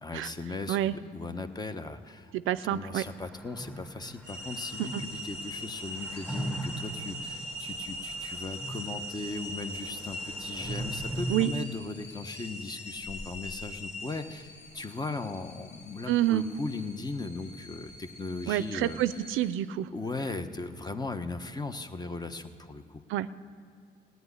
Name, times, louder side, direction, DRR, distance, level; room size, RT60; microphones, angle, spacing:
voice 1, 0.0-2.3 2.7-14.5 14.7-19.3 19.9-23.0, left 3 dB, 20° left, 9 dB, 1.1 m, -38 dB
voice 2, 2.3-3.0 4.8-5.0 11.3-11.5 16.1-16.4 18.5-19.9 23.1-23.3, right 13 dB, 90° right, 16 dB, 0.5 m, -28 dB
sound 1, 2.8-11.5, right 1 dB, ahead, 1.9 m, -40 dB
sound 2, 4.2-19.6, equal, 60° left, 2.7 m, -41 dB
16.0 x 9.2 x 9.8 m, 2.4 s
cardioid pair, 90°, 20 cm